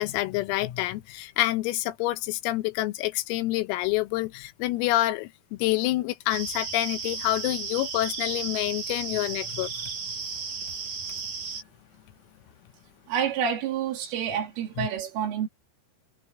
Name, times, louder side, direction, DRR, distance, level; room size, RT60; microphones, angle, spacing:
voice 1, 0.0-9.7 14.8-14.9, left 17 dB, 85° left, 3.8 m, -27 dB
sound 1, 6.3-11.6, right 5 dB, 40° right, 5.9 m, -34 dB
voice 2, 13.1-15.5, right 8 dB, 75° right, 5.3 m, -28 dB
omnidirectional pair, 5.9 m